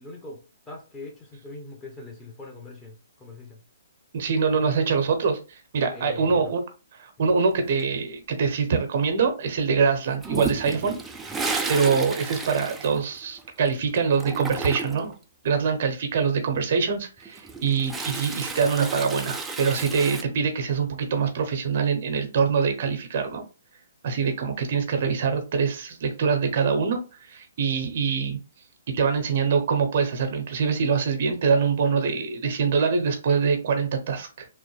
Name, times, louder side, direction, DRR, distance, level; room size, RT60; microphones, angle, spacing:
voice 1, 0.0-3.6 5.9-6.5 7.2-7.3, left 2 dB, 15° left, 0.8 m, -42 dB
voice 2, 4.1-6.6 7.0-10.9 11.3-15.1 15.4-23.4 24.0-28.4 28.9-34.5, right 5 dB, 50° right, 0.7 m, -24 dB
Toilet flush, 10.2-13.7 13.9-15.1 17.2-20.2, right 4 dB, 10° right, 0.3 m, -32 dB
3.0 x 2.1 x 3.0 m
hypercardioid pair, 135°, 0 cm